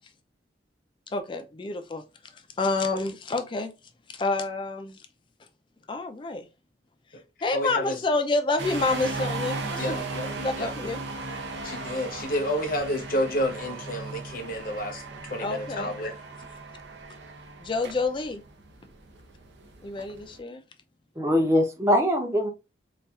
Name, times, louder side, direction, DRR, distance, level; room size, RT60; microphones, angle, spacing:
voice 1, 1.1-2.0 2.3-3.7 4.1-5.1 5.9-6.5 7.4-10.0 10.4-11.0 15.4-15.9 17.6-18.4 19.8-20.6, left 3 dB, 25° left, 0.4 m, -28 dB
voice 2, 7.5-8.0 9.8-10.7 11.6-15.0 15.3-16.1, equal, 50° left, 0.7 m, -30 dB
sound 1, 8.6-20.4, right 3 dB, 75° right, 0.6 m, -36 dB
voice 3, 21.2-22.5, equal, 15° right, 0.6 m, -22 dB
4.1 x 2.4 x 2.3 m
head